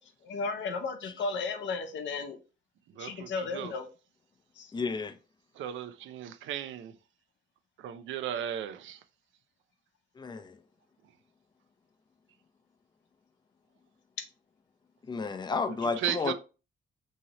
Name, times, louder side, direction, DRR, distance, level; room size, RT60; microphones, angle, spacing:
voice 1, 0.2-2.4 3.0-3.9 4.6-4.7, left 4 dB, 65° left, 0.7 m, -34 dB
voice 2, 2.9-3.7 5.6-6.9 7.8-9.0 15.7-16.3, right 10 dB, 75° right, 0.4 m, -36 dB
voice 3, 4.7-5.1 10.2-10.5 15.1-16.3, left 4 dB, 20° left, 0.4 m, -31 dB
2.8 x 2.8 x 2.9 m
cardioid pair, 90°, 20 cm